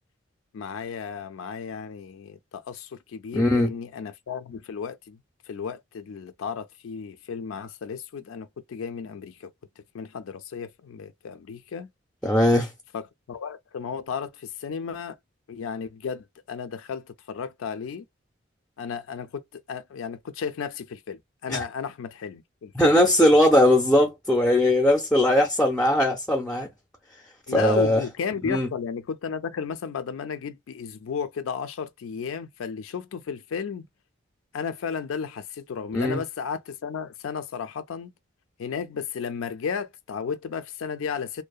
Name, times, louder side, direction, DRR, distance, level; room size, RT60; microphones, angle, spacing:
voice 1, 0.5-5.2 5.5-9.5 9.9-11.9 12.9-15.2 15.5-18.1 18.8-22.9 27.5-33.9 34.5-38.1 38.6-41.4, left 6 dB, 85° left, 0.4 m, -34 dB
voice 2, 3.3-3.7 12.2-12.7 21.5-21.6 22.7-26.7 27.5-28.0 28.5-28.7 35.9-36.2, left 1 dB, 5° left, 0.5 m, -20 dB
2.7 x 2.0 x 2.3 m
head